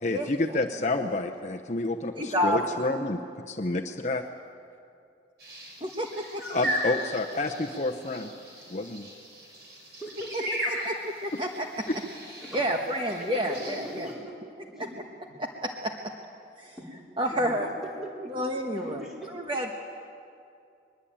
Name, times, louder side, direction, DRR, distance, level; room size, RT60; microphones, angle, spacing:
voice 1, 0.0-3.2 3.5-4.3 6.5-8.3 8.7-9.1, left 2 dB, 40° left, 4 dB, 0.8 m, -29 dB
voice 2, 2.2-2.6 5.8-6.4 10.3-10.9 11.4-11.7 12.5-14.1 14.8-14.9 15.4-15.9 16.6-16.7 17.2-17.7 18.3-19.7, equal, 25° right, 2 dB, 1.3 m, -29 dB
sound 1, 5.4-14.1, equal, 60° right, 6.0 m, -37 dB
voice 3, 10.0-11.0 11.9-12.0 12.4-12.6 12.9-14.3 14.8-14.9 16.8-16.9 17.3-18.3 18.7-19.3, equal, ahead, -4 dB, 4.7 m, -41 dB
22.0 x 21.5 x 8.8 m, 2.4 s
head